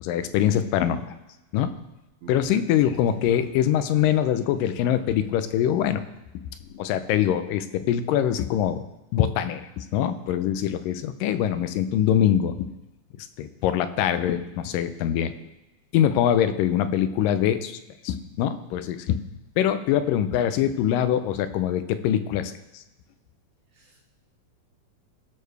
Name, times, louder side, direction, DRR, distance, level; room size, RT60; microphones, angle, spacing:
voice 1, 0.0-1.1 1.5-1.7 2.3-6.0 6.3-6.4 6.7-8.8 9.1-12.7 13.1-15.3 15.9-17.8 18.0-19.2 19.6-22.8, left 10 dB, 90° left, 11 dB, 2.3 m, -23 dB
Gurgling / Sink (filling or washing) / Liquid, 1.6-1.8 2.7-5.4 5.8-6.1 6.6-6.9 7.8-8.0, left 7 dB, 70° left, 2.4 m, -47 dB
voice 2, 2.2-2.6 23.7-24.0, right 6 dB, 75° right, 2 dB, 1.5 m, -45 dB
17.5 x 6.6 x 3.4 m, 0.99 s
omnidirectional pair, 3.8 m